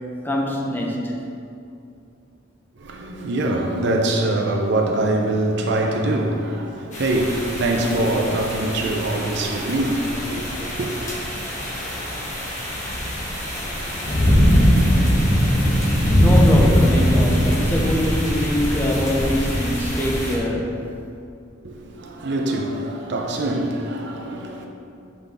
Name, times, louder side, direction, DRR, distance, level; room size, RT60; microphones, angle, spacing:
voice 1, 0.2-1.2 16.2-20.8, left 1 dB, 10° left, 0.6 m, -23 dB
voice 2, 2.8-10.9 21.6-24.7, right 1 dB, 65° right, 0.6 m, -23 dB
sound 1, 6.9-20.4, equal, 40° left, 1.2 m, -21 dB
6.9 x 3.9 x 3.5 m
head